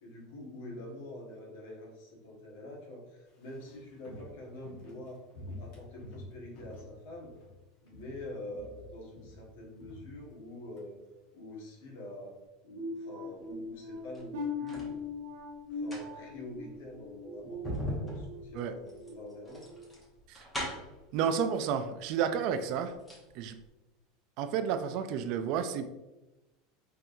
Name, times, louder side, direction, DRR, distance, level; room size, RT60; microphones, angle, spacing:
voice 1, 0.0-5.2 5.6-7.3 7.8-11.0 11.3-12.3 12.6-15.1 15.7-19.7, left 1 dB, 75° left, -2 dB, 1.4 m, -46 dB
Walk footsteps, 3.3-7.6 7.9-8.3 8.5-10.9 11.1-11.2, left 1 dB, 60° left, 1.2 m, -49 dB
sound 1, 12.8-18.4 18.8-19.1 19.6-19.8, left 3 dB, 85° right, 1.2 m, -40 dB
sound 2, 14.0-14.9 15.7-21.0 22.0-22.1 22.5-23.3 23.6-23.7, equal, 10° left, 1.0 m, -40 dB
voice 2, 21.1-22.9 23.3-23.6 24.4-25.9, right 7 dB, 55° right, 10 dB, 0.3 m, -31 dB
4.5 x 3.4 x 2.6 m, 1.0 s
supercardioid pair, 150°, 0 cm